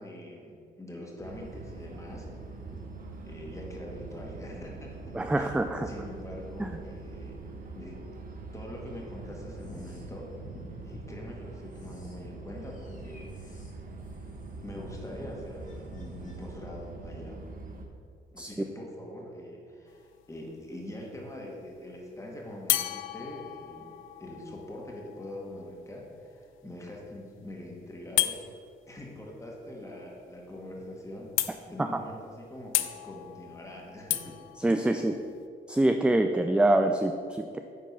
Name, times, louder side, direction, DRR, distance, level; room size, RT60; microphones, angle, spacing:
voice 1, 0.0-2.3 3.3-5.5 5.9-7.4 7.8-8.1 8.5-10.3 10.8-13.6 14.6-17.4 18.3-23.9 24.2-28.4 28.9-34.4, left 1 dB, 15° left, -2 dB, 1.9 m, -43 dB
sound 1, 1.2-17.9, right 3 dB, 45° right, 1.1 m, -43 dB
voice 2, 5.1-5.9 6.6-6.8 18.4-18.5 31.8-32.0 34.6-35.2 35.7-37.6, right 1 dB, 5° right, 6 dB, 0.3 m, -25 dB
sound 2, 9.2-11.0 11.4-16.5, left 2 dB, 40° left, 1.6 m, -50 dB
sound 3, 19.9-20.4 22.7-26.3 28.2-28.4 30.4-30.5 30.8-30.9 31.4-31.9 32.7-35.5, left 14 dB, 90° left, 0.4 m, -33 dB
9.2 x 4.4 x 5.6 m, 2.3 s
cardioid pair, 90°, 20 cm